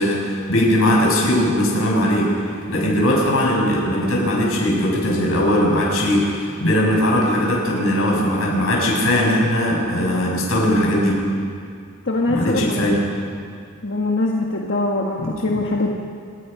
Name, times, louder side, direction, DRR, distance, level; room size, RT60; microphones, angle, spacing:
voice 1, 0.0-2.3 2.7-11.2 12.3-13.0 15.2-15.3, left 1 dB, 85° left, -3 dB, 7.7 m, -19 dB
voice 2, 12.1-12.8 13.8-15.9, left 2 dB, 55° left, -1 dB, 1.6 m, -22 dB
26.5 x 21.0 x 5.8 m, 2.4 s
head